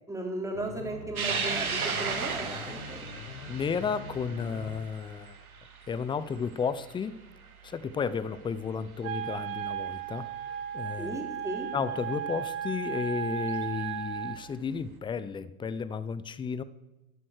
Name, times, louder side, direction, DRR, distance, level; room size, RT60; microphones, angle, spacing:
voice 1, 0.1-3.1 11.0-11.7, right 2 dB, 5° right, 3.5 m, -36 dB
sound 1, 0.5-4.8, left 5 dB, 85° left, 1.0 m, -44 dB
sound 2, 1.2-7.8 8.3-8.4 9.6-9.7 11.9-12.0 13.4-13.6, right 5 dB, 85° right, 2.1 m, -35 dB
voice 2, 3.5-5.4 5.9-7.2 7.6-11.2 11.7-16.6, left 6 dB, 10° left, 0.5 m, -33 dB
Wind instrument woodwind instrument, 9.0-14.4, right 9 dB, 35° right, 1.2 m, -35 dB
11.0 x 11.0 x 6.5 m
hypercardioid pair, 95°, 42 cm